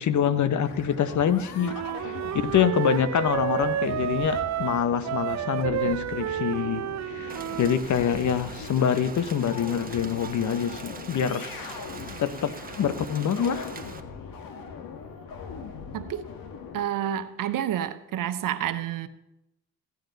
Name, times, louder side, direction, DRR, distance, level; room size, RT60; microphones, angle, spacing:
voice 1, 0.0-11.4 12.2-13.7, left 8 dB, 55° left, 0.9 m, -26 dB
sound 1, 0.6-16.8, left 5 dB, 70° left, 1.5 m, -41 dB
Wind instrument woodwind instrument, 1.6-7.8, right 12 dB, 50° right, 0.5 m, -30 dB
Rain, 7.3-14.0, right 4 dB, 25° right, 1.2 m, -42 dB
voice 2, 15.9-16.3 16.7-19.1, right 10 dB, 65° right, 0.9 m, -29 dB
15.5 x 9.3 x 4.0 m
supercardioid pair, 65°, 35 cm